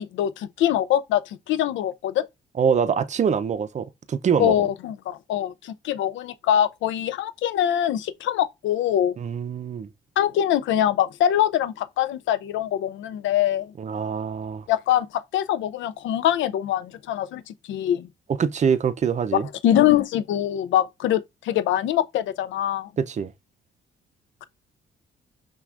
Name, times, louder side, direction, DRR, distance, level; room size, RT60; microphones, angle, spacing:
voice 1, 0.0-2.3 4.4-9.1 10.2-13.7 14.7-18.1 19.3-22.9, left 11 dB, 75° left, 0.4 m, -23 dB
voice 2, 2.6-4.7 9.2-9.9 13.8-14.7 18.4-19.5 23.0-23.3, right 7 dB, 35° right, 0.5 m, -24 dB
5.8 x 2.3 x 2.5 m
cardioid pair, 90°, 20 cm